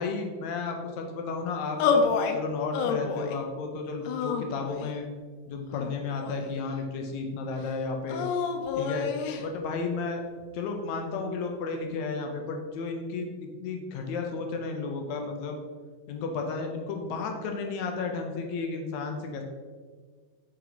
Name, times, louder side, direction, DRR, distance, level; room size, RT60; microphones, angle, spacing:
voice 1, 0.0-2.1 2.3-5.0 5.5-8.3 8.8-9.1 9.4-10.2 10.5-15.6 16.1-19.4, left 4 dB, 70° left, 3 dB, 2.0 m, -33 dB
sound 1, 1.8-2.4 2.7-3.4 4.0-5.0 5.7-6.7 8.1-9.4, left 5 dB, 90° left, 2.2 m, -28 dB
8.0 x 4.7 x 4.0 m, 1.5 s
omnidirectional pair, 3.6 m